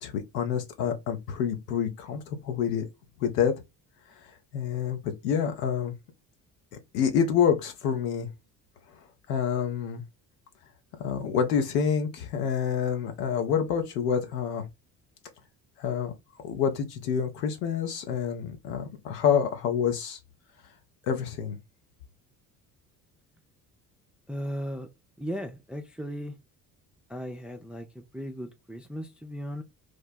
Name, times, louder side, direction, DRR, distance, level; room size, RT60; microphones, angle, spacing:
voice 1, 0.0-2.9 3.2-3.5 4.5-5.9 6.9-8.3 9.3-10.0 11.0-14.6 15.8-16.1 16.4-20.2 21.0-21.6, left 7 dB, 70° left, 1.0 m, -27 dB
voice 2, 24.3-24.9 25.2-26.3 27.1-29.6, equal, ahead, 0.4 m, -36 dB
3.2 x 2.2 x 4.1 m
figure-of-eight pair, 50°, 49 cm